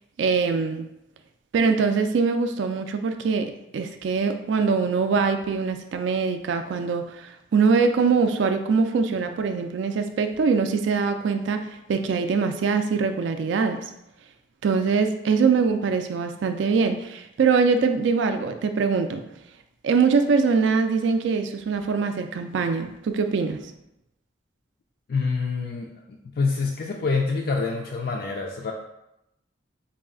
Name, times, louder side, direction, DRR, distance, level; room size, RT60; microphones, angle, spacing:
voice 1, 0.2-0.9 1.5-11.6 11.9-13.8 14.6-19.2 19.8-23.6, right 5 dB, 75° right, 7 dB, 0.3 m, -23 dB
voice 2, 25.1-28.7, left 4 dB, 50° left, 1 dB, 0.3 m, -26 dB
4.0 x 2.3 x 3.6 m, 0.86 s
head